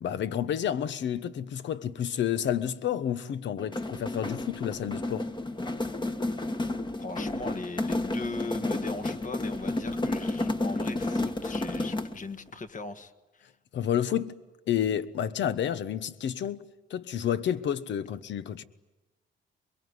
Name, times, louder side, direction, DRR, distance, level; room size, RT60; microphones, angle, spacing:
voice 1, 0.0-5.3 13.7-14.3 14.7-16.6 16.9-18.6, left 9 dB, 65° left, 1.1 m, -30 dB
sound 1, 3.6-12.3, left 2 dB, 25° left, 1.5 m, -31 dB
voice 2, 7.0-13.5, left 3 dB, 40° left, 1.7 m, -39 dB
23.5 x 23.0 x 9.7 m
cardioid pair, 90°, 20 cm